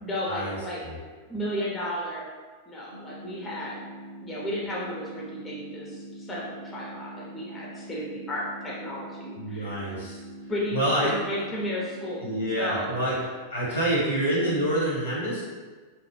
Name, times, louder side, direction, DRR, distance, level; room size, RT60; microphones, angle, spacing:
voice 1, 0.0-0.8 1.3-2.3 2.7-3.8 4.2-9.8 10.5-12.3 12.6-12.9 13.2-13.3 13.7-14.0, equal, 20° left, -5 dB, 0.6 m, -33 dB
sound 1, 2.9-12.9, right 1 dB, 85° right, 0.6 m, -43 dB
voice 2, 9.3-10.2 10.7-11.1 12.2-13.1 13.5-15.4, right 1 dB, 75° left, -6 dB, 1.2 m, -27 dB
3.0 x 2.1 x 3.2 m, 1.4 s
figure-of-eight pair, 90°, 0 cm